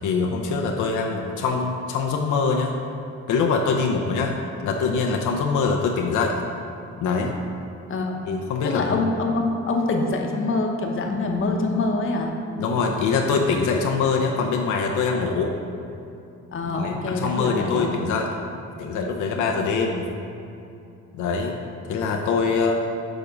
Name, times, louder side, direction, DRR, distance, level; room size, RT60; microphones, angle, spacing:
voice 1, 0.0-2.7 3.3-4.4 4.6-6.4 7.0-7.4 8.3-9.0 12.5-15.5 16.7-18.3 18.8-20.0 21.1-21.5 21.9-22.8, left 4 dB, 80° left, 1 dB, 0.6 m, -23 dB
voice 2, 7.9-8.2 8.6-12.3 16.5-17.9, left 3 dB, 45° left, 2 dB, 0.9 m, -25 dB
7.0 x 3.6 x 5.0 m, 2.7 s
cardioid pair, 90°, 30 cm